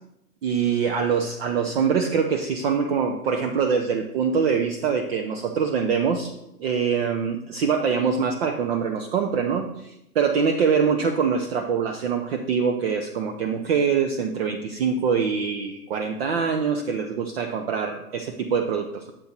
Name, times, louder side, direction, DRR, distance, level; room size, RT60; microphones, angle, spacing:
voice 1, 0.4-6.3 6.6-19.1, right 6 dB, 40° right, 4 dB, 0.8 m, -24 dB
9.1 x 7.6 x 4.0 m, 0.84 s
figure-of-eight pair, 110°, 49 cm